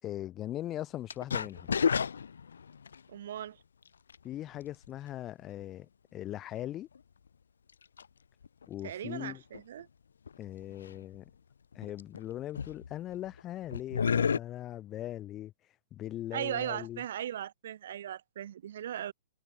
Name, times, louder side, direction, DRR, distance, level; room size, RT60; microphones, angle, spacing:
voice 1, 0.0-1.8 4.2-6.9 8.7-9.4 10.4-11.3 11.7-15.5 15.9-17.0, left 13 dB, 25° left, 6.2 m, -40 dB
sound 1, 1.1-3.0 4.1-4.3 4.8-4.9 6.9-7.0 8.0-8.1 8.4-8.6 9.5-9.6 10.3-10.4 10.6-11.2 11.7-12.2 12.5-13.4 13.7-14.4, left 6 dB, 85° left, 0.8 m, -31 dB
voice 2, 3.1-3.6 8.8-9.9 16.3-19.1, right 10 dB, 60° right, 2.8 m, -38 dB
hypercardioid pair, 145°, 0 cm